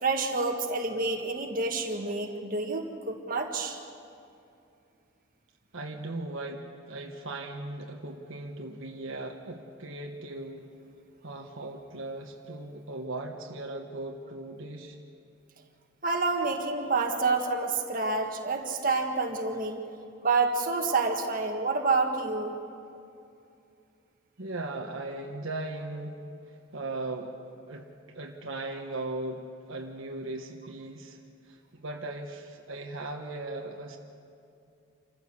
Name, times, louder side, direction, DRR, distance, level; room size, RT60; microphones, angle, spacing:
voice 1, 0.0-3.8 16.0-19.8 20.2-22.6, right 3 dB, 40° right, 2 dB, 1.8 m, -28 dB
voice 2, 5.7-10.7 11.2-15.0 24.4-27.3 27.7-31.2 31.5-34.0, right 2 dB, 65° right, 2 dB, 1.3 m, -38 dB
27.5 x 14.5 x 7.0 m, 2.6 s
head